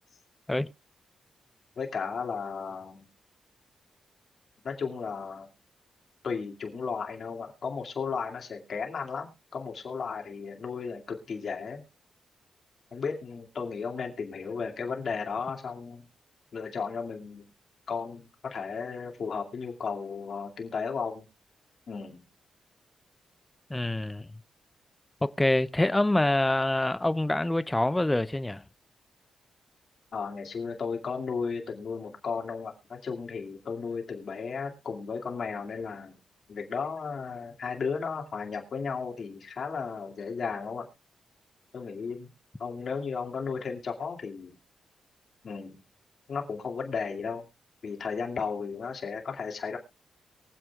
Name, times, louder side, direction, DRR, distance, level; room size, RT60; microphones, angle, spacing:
voice 1, 1.8-3.1 4.6-5.5 6.2-11.8 12.9-16.1 16.5-17.5 17.9-21.3 21.9-22.2 30.1-36.2 36.5-40.9 41.7-42.3 42.6-44.6 45.4-45.8 46.3-47.5 47.8-49.8, left 5 dB, 55° left, 2.3 m, -34 dB
voice 2, 23.7-24.3 25.2-28.6, left 1 dB, 10° left, 0.5 m, -26 dB
23.0 x 7.8 x 2.4 m
cardioid pair, 110°, 0 cm